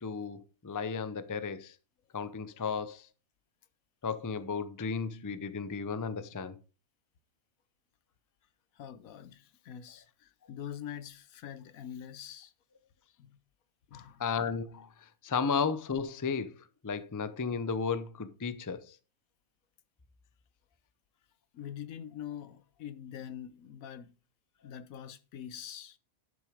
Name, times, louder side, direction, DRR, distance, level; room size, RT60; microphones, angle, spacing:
voice 1, 0.0-1.8 2.1-3.1 4.0-6.6 14.2-19.0, left 5 dB, 25° left, 0.4 m, -34 dB
voice 2, 8.7-12.5 13.2-13.3 13.9-14.2 21.5-24.1 24.6-26.0, left 9 dB, 75° left, 1.2 m, -44 dB
10.5 x 6.4 x 5.1 m
omnidirectional pair, 1.5 m